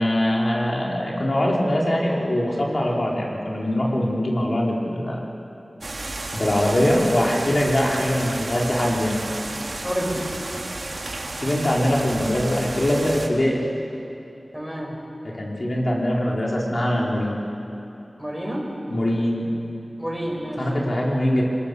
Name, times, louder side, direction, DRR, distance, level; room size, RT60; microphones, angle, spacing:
voice 1, 0.0-5.2 6.3-9.2 11.3-13.6 15.4-17.4 18.9-19.5 20.6-21.4, left 1 dB, 55° left, -3 dB, 4.2 m, -22 dB
sound 1, 5.8-13.3, right 2 dB, 70° right, 2.2 m, -32 dB
voice 2, 9.8-10.3 14.5-15.0 18.2-18.8 20.0-20.7, equal, ahead, -2 dB, 6.3 m, -29 dB
26.5 x 20.5 x 6.9 m, 3.0 s
wide cardioid pair, 55°, 0 cm